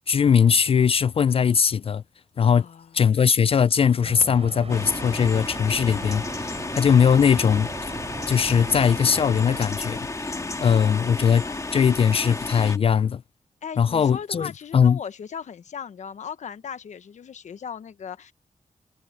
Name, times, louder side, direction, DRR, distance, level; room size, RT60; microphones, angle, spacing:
voice 1, 0.1-2.0 2.4-2.7 2.9-7.7 8.3-10.3 10.6-11.4 11.7-13.2 13.8-15.0, left 7 dB, 50° left, 0.4 m, -20 dB
voice 2, 2.5-2.9 10.3-11.7 13.6-18.3, left 7 dB, 80° left, 1.2 m, -38 dB
sound 1, 4.0-9.6, right 5 dB, 55° right, 6.0 m, -40 dB
sound 2, 4.7-12.8, left 2 dB, 25° left, 1.9 m, -32 dB
cardioid pair, 70°, 12 cm